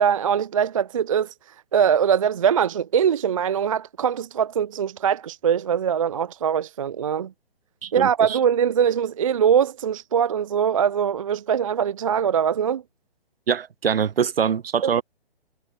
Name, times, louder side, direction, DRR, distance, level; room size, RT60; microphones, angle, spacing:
voice 1, 0.0-1.3 1.7-7.3 7.9-12.8 14.8-15.0, right 8 dB, 35° right, 0.4 m, -22 dB
voice 2, 7.8-8.4 13.5-15.0, right 7 dB, 65° right, 1.2 m, -24 dB
figure-of-eight pair, 135°, 32 cm